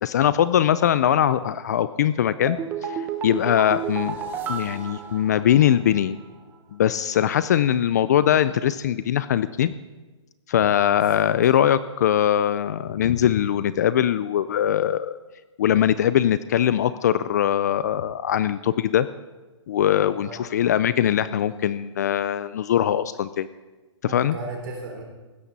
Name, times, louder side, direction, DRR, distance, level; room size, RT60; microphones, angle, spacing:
voice 1, 0.0-4.2 4.5-6.2 6.7-9.7 10.5-15.2 15.6-19.1 19.7-23.5 24.0-24.4, left 10 dB, 35° left, 15 dB, 0.4 m, -21 dB
sound 1, 2.5-5.9 6.2-6.3, right 6 dB, 10° right, 0.8 m, -31 dB
voice 2, 24.1-25.0, right 2 dB, 45° right, 1 dB, 3.9 m, -36 dB
16.0 x 13.0 x 4.1 m, 1.2 s
hypercardioid pair, 160°, 16 cm